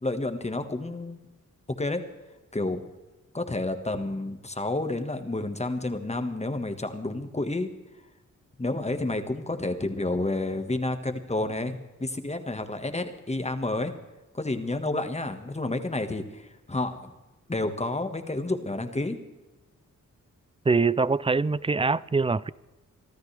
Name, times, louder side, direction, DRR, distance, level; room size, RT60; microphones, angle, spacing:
voice 1, 0.0-1.2 1.7-2.0 2.5-2.8 3.3-7.7 8.6-13.9 14.3-17.1 17.5-19.2, left 2 dB, 20° left, 7 dB, 1.6 m, -30 dB
voice 2, 20.7-22.5, right 4 dB, 20° right, 19 dB, 0.4 m, -23 dB
26.0 x 13.0 x 3.4 m, 1.1 s
wide cardioid pair, 90°, 32 cm